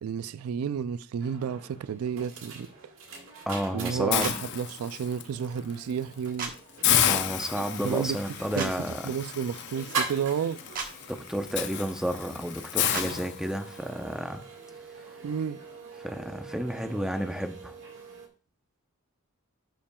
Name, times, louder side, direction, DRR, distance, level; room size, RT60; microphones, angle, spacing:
voice 1, 0.0-2.7 3.7-6.5 7.6-8.2 8.6-8.7 9.0-10.6 15.2-15.6, right 7 dB, 90° right, 0.3 m, -31 dB
sound 1, 1.2-18.3, right 4 dB, 65° right, 1.7 m, -42 dB
voice 2, 3.5-4.4 7.0-9.0 11.1-14.4 16.0-17.7, equal, 5° right, 0.6 m, -31 dB
Hiss, 4.1-5.2 5.7-5.9 6.2-6.3 6.8-13.9, left 10 dB, 55° left, 0.6 m, -31 dB
sound 2, 4.2-4.4 6.4-6.5 8.6-8.7 10.7-10.9 12.9-13.1, right 4 dB, 40° right, 1.1 m, -33 dB
11.0 x 5.8 x 2.3 m
head